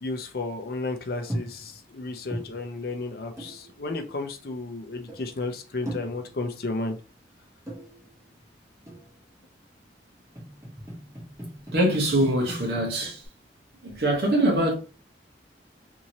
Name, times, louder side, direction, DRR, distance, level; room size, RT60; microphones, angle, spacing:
voice 1, 0.0-7.0, left 3 dB, 55° left, 0.5 m, -33 dB
sound 1, 1.2-1.8 2.0-3.0 3.4-4.1 4.7-4.8 5.0-5.6 5.9-6.6 7.5-8.4 8.9-9.4 10.1-13.3, right 1 dB, 15° right, 0.9 m, -39 dB
voice 2, 11.7-13.2 13.8-14.7, right 1 dB, 65° right, 0.9 m, -23 dB
2.7 x 2.7 x 2.9 m
head